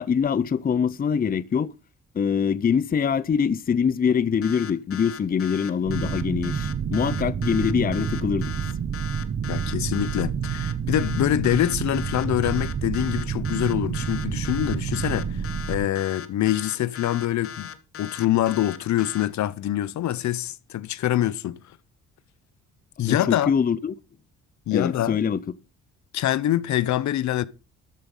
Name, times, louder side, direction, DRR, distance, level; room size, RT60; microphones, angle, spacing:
voice 1, 0.0-1.7 2.1-8.5 23.0-23.9 24.7-25.4, left 7 dB, 30° left, 0.6 m, -24 dB
sound 1, 4.4-19.3, left 8 dB, 50° left, 1.3 m, -39 dB
sound 2, 5.9-15.9, right 7 dB, 45° right, 1.0 m, -29 dB
voice 2, 9.5-17.7 18.0-21.6 23.0-23.5 24.7-25.2 26.1-27.5, left 13 dB, 70° left, 0.8 m, -25 dB
13.0 x 7.4 x 5.5 m
cardioid pair, 90°, 30 cm